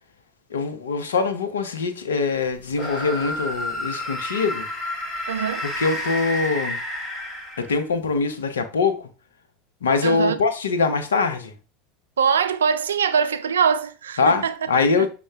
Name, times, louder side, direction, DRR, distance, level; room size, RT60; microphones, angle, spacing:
voice 1, 0.5-4.7 5.6-6.8 7.6-9.1 9.8-11.5 14.2-15.1, left 4 dB, 85° left, 0.6 m, -23 dB
sound 1, 2.7-8.0, left 1 dB, 35° left, 2.0 m, -30 dB
voice 2, 5.3-5.7 10.0-10.4 12.2-14.5 15.0-15.1, right 6 dB, 85° right, 0.4 m, -22 dB
6.3 x 2.3 x 3.4 m
hypercardioid pair, 80°, 0 cm